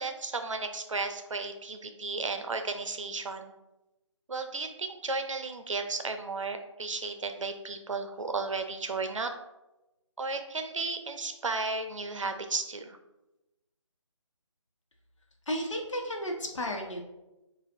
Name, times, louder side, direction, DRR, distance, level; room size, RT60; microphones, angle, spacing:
voice 1, 0.0-3.5 4.3-9.3 10.2-13.0, right 3 dB, 75° right, 6 dB, 0.6 m, -34 dB
voice 2, 15.5-17.0, equal, 75° left, 1 dB, 1.0 m, -33 dB
6.8 x 2.5 x 2.5 m, 0.99 s
figure-of-eight pair, 180°, 16 cm